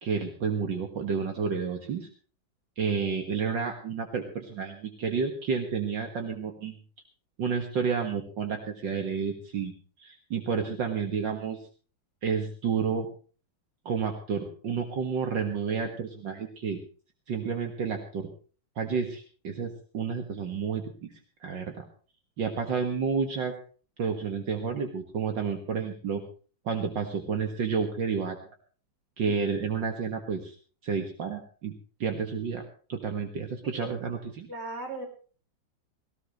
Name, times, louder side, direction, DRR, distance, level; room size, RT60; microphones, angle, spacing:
voice 1, 0.0-2.1 2.8-6.8 7.4-9.7 10.0-11.6 12.2-13.1 13.9-16.8 17.3-18.3 18.8-21.1 21.4-21.7 22.4-23.5 24.0-26.2 26.7-28.4 29.2-30.6 30.8-31.7 32.0-32.6 32.9-34.5, right 6 dB, 70° right, 4 dB, 2.3 m, -30 dB
voice 2, 34.5-35.1, right 2 dB, 30° right, 2 dB, 5.0 m, -37 dB
18.5 x 17.5 x 3.1 m, 0.39 s
omnidirectional pair, 2.1 m